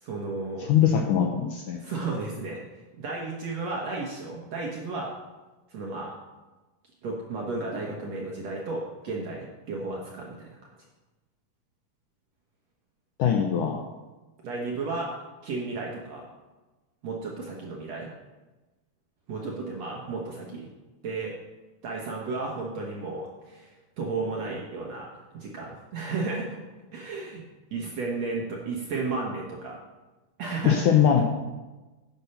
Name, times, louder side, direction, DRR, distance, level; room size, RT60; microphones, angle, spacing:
voice 1, 0.0-0.7 1.8-2.6 3.0-5.1 5.7-6.2 7.0-10.7 14.4-15.2 15.4-16.3 17.0-18.1 19.3-20.7 21.0-21.4 21.8-25.1 25.3-26.6 26.9-27.4 27.7-29.8 30.4-30.9, right 3 dB, 60° right, -2 dB, 1.9 m, -33 dB
voice 2, 0.6-1.8 13.2-13.8 30.6-31.2, left 9 dB, 75° left, 2 dB, 1.9 m, -21 dB
9.8 x 8.2 x 5.7 m, 1.2 s
omnidirectional pair, 4.5 m